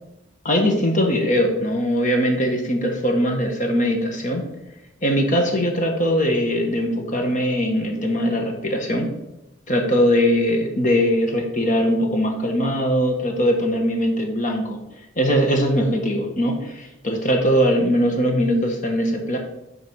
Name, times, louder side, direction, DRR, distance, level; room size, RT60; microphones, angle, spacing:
voice 1, 0.4-4.5 5.0-9.1 9.7-14.8 15.2-19.4, equal, 40° left, 3 dB, 1.3 m, -21 dB
11.0 x 4.1 x 4.7 m, 0.91 s
head